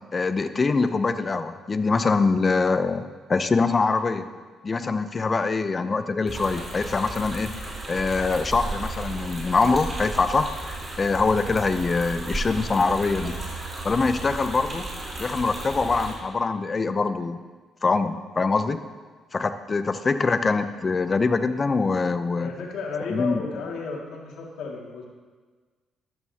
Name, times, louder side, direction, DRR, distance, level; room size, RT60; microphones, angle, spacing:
voice 1, 0.1-3.0 3.3-4.2 4.6-7.6 7.9-10.5 11.0-13.4 13.8-14.8 15.2-17.4 17.8-18.8 19.3-22.5 23.1-23.4, left 4 dB, 35° left, 10 dB, 0.6 m, -24 dB
sound 1, 6.3-16.1, right 2 dB, 25° right, 3.7 m, -34 dB
voice 2, 22.3-25.0, left 4 dB, 80° left, -1 dB, 2.2 m, -33 dB
13.0 x 12.5 x 2.9 m, 1.4 s
cardioid pair, 90°, 0 cm